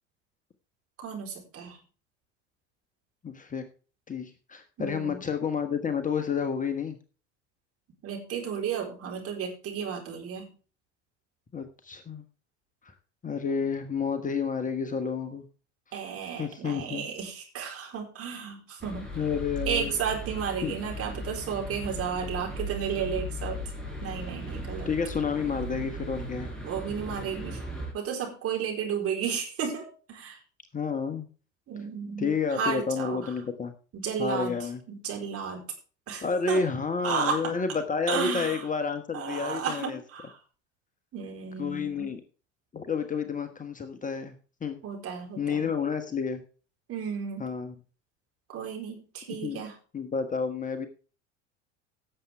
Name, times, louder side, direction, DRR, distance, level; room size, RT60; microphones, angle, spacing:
voice 1, 1.0-1.8 4.8-5.2 8.0-10.5 15.9-19.1 19.7-23.6 24.0-24.9 26.6-27.6 27.9-30.4 31.7-33.3 33.9-34.5 34.9-35.6 36.1-36.6 37.0-37.5 38.1-38.6 39.1-40.4 41.1-42.1 44.8-45.7 46.9-47.5 48.5-49.7, right 7 dB, 40° right, 0 dB, 4.2 m, -33 dB
voice 2, 3.2-3.6 4.1-7.0 11.5-12.2 12.8-12.9 13.2-15.4 15.9-16.0 16.4-17.1 19.1-19.9 20.6-20.7 24.8-26.5 30.7-31.3 32.2-33.7 34.2-34.8 36.2-40.0 41.6-42.2 42.7-44.4 44.6-44.8 45.4-46.4 47.4-47.7 49.4-49.6 49.9-50.9, left 5 dB, 20° left, 8 dB, 1.3 m, -30 dB
sound 1, 18.8-27.9, equal, ahead, 5.4 m, -37 dB
17.0 x 7.4 x 3.5 m, 0.37 s
figure-of-eight pair, 75°, 36 cm